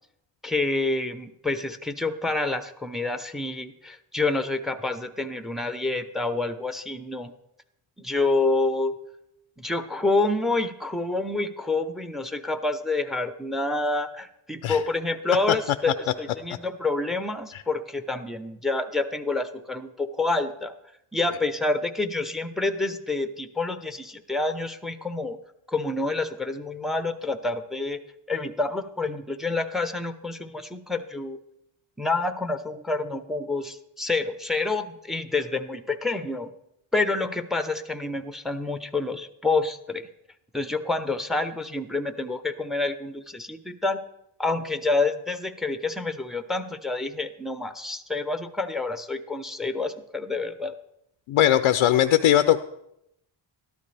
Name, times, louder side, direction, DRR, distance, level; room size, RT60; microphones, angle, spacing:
voice 1, 0.4-7.3 8.0-9.0 9.6-20.7 21.1-25.4 25.7-28.0 28.3-31.4 32.0-36.5 36.9-40.1 40.5-44.0 44.4-50.7, left 3 dB, ahead, 10 dB, 0.7 m, -28 dB
voice 2, 51.3-52.6, left 11 dB, 80° left, 10 dB, 0.6 m, -19 dB
13.0 x 12.0 x 3.3 m, 0.80 s
cardioid pair, 80°, 50 cm